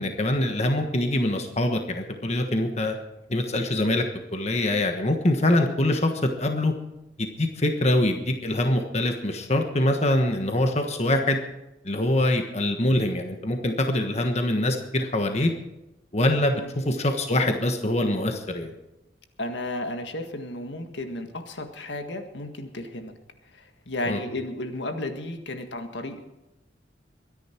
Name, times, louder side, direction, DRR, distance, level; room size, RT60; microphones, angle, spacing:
voice 1, 0.0-3.0 3.3-4.0 4.3-6.1 6.4-6.7 7.2-11.4 11.8-15.5 16.1-18.7 24.1-24.2, left 1 dB, 35° left, 5 dB, 1.3 m, -24 dB
voice 2, 19.4-23.1 23.5-26.2, left 1 dB, 75° left, 6 dB, 1.7 m, -33 dB
23.0 x 10.5 x 4.5 m, 0.96 s
head